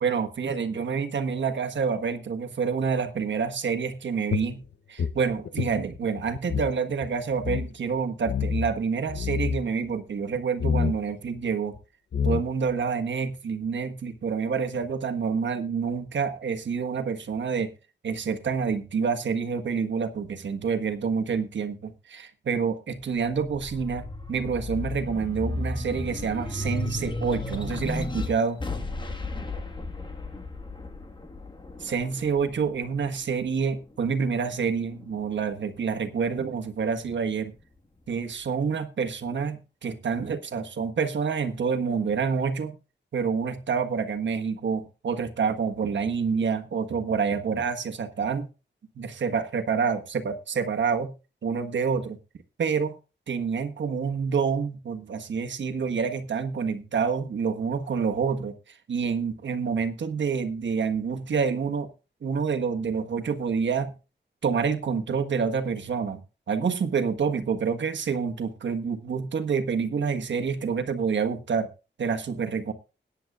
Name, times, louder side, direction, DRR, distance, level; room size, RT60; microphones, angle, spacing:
voice 1, 0.0-4.6 4.9-11.8 12.2-17.7 18.0-28.6 31.8-37.5 38.1-42.8 43.1-48.5 48.9-51.1 51.4-52.2 52.6-53.0 53.3-61.9 62.2-63.9 64.4-71.7 72.0-72.7, right 5 dB, 85° right, 1.4 m, -28 dB
sound 1, 4.3-6.7 7.0-7.1 7.4-7.7 8.3-8.7 9.1-9.6 10.6-11.0 11.8-11.9 12.1-12.7, left 6 dB, 75° left, 0.7 m, -27 dB
sound 2, 23.0-33.8 34.3-35.5, left 2 dB, 25° left, 1.6 m, -34 dB
21.0 x 9.9 x 2.4 m
wide cardioid pair, 175°, 19 cm